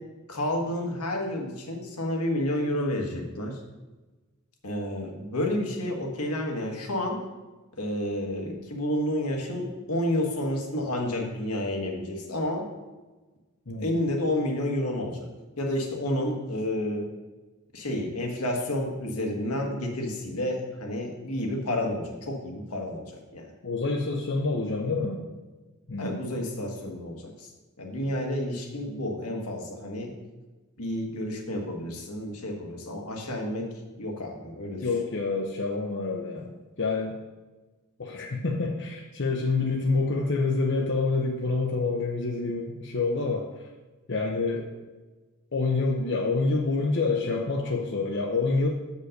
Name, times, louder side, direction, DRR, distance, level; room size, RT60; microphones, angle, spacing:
voice 1, 0.3-3.6 4.6-7.2 7.8-12.7 13.8-15.3 15.6-17.1 17.7-23.5 26.0-27.5 27.8-30.1 30.8-33.7 34.0-34.9, left 1 dB, 85° left, 1 dB, 1.5 m, -30 dB
voice 2, 13.7-14.0 23.6-25.2 25.9-26.2 34.8-36.5 36.8-37.2 38.0-43.5 44.1-44.7 45.5-48.7, left 3 dB, 55° left, 1 dB, 0.8 m, -27 dB
6.5 x 5.4 x 6.4 m, 1.2 s
head